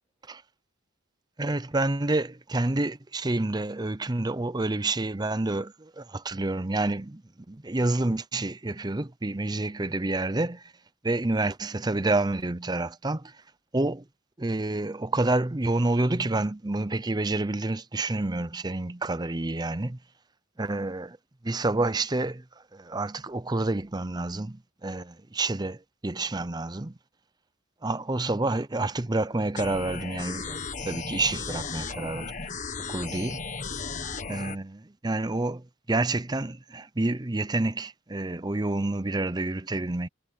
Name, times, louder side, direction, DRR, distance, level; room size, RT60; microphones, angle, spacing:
voice 1, 1.4-7.2 7.5-10.6 11.0-13.3 13.7-14.0 14.4-20.0 20.6-21.2 21.4-22.4 22.7-25.8 26.0-26.9 27.8-32.3 32.8-33.4 34.3-40.1, right 2 dB, 20° right, 0.6 m, -28 dB
sound 1, 29.6-34.6, left 4 dB, 35° left, 1.4 m, -35 dB
head